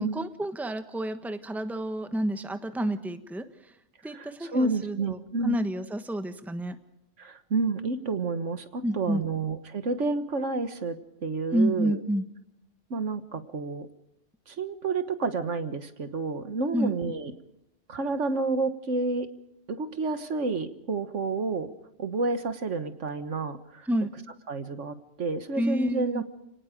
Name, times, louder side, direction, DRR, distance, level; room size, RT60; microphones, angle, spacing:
voice 1, 0.0-3.4 4.0-6.8 8.8-9.2 11.5-12.3 16.7-16.9 23.9-24.1 25.6-26.2, right 1 dB, ahead, 8 dB, 1.2 m, -29 dB
voice 2, 4.1-5.6 7.2-11.0 11.2-12.0 12.9-13.9 14.5-17.3 17.9-19.3 19.7-21.7 22.0-23.9 24.5-26.2, right 3 dB, 70° right, 10 dB, 1.7 m, -30 dB
30.0 x 18.5 x 5.2 m, 0.80 s
omnidirectional pair, 1.3 m